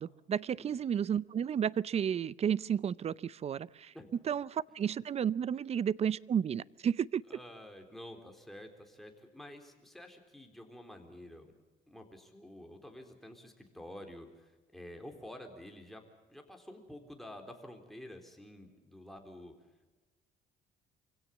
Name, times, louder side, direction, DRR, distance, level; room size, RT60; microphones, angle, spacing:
voice 1, 0.0-3.9 4.3-7.2, right 8 dB, 40° right, 21 dB, 0.6 m, -32 dB
voice 2, 7.3-11.5 11.9-16.0 16.3-19.6, left 1 dB, ahead, 3 dB, 3.9 m, -49 dB
25.5 x 17.0 x 7.2 m, 1.2 s
cardioid pair, 110°, 17 cm